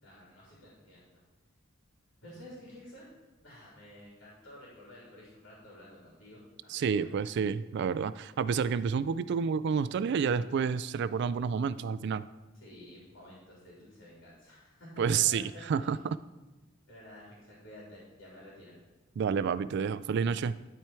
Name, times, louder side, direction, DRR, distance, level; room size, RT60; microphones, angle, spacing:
voice 1, 0.0-1.2 2.2-3.1 3.4-7.1 12.6-15.4 15.7-15.9 16.9-18.8, left 1 dB, 70° left, -5 dB, 3.0 m, -51 dB
voice 2, 6.7-12.2 15.0-16.2 19.2-20.6, right 6 dB, 60° right, 15 dB, 0.3 m, -29 dB
12.5 x 4.4 x 4.6 m, 1.2 s
head